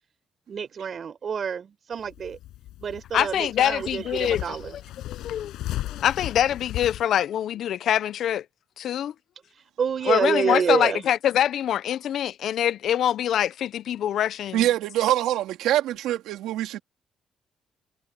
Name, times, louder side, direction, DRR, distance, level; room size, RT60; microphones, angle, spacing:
voice 1, 0.5-2.4 2.8-4.7 9.8-11.0, right 7 dB, 50° right, 4.5 m, -27 dB
sound 1, 1.9-7.0, left 14 dB, 90° left, 7.7 m, -36 dB
voice 2, 3.1-4.6 5.1-5.5 5.9-8.4 8.8-9.1 10.1-14.6, left 10 dB, 70° left, 0.6 m, -24 dB
voice 3, 14.5-16.8, right 13 dB, 90° right, 3.2 m, -24 dB
cardioid pair, 90°, 0 cm